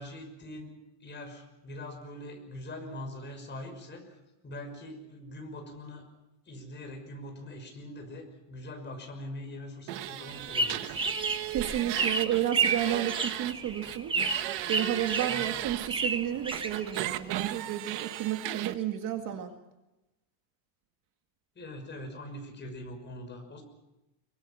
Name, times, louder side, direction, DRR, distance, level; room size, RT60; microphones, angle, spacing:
voice 1, 0.0-6.0 6.5-11.0 15.2-15.5 21.5-23.6, left 1 dB, 20° left, 4 dB, 6.0 m, -43 dB
sound 1, 9.9-13.5 13.8-15.9 16.5-18.7, right 15 dB, 60° right, 1.4 m, -36 dB
sound 2, 10.3-17.3, right 4 dB, 10° right, 1.0 m, -32 dB
voice 2, 11.5-14.2 14.7-19.5, right 11 dB, 40° right, 5 dB, 2.1 m, -31 dB
26.0 x 23.5 x 5.9 m, 0.97 s
cardioid pair, 165°, 49 cm